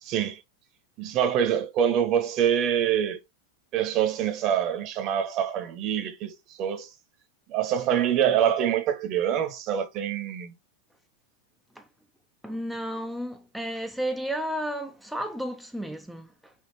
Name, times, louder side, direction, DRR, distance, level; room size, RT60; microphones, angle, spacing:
voice 1, 0.0-0.4 1.0-3.2 3.7-6.9 7.5-10.5, right 9 dB, 40° right, 0.8 m, -25 dB
voice 2, 12.4-16.5, equal, ahead, 0.4 m, -33 dB
3.6 x 2.4 x 4.4 m
figure-of-eight pair, 90°, 0 cm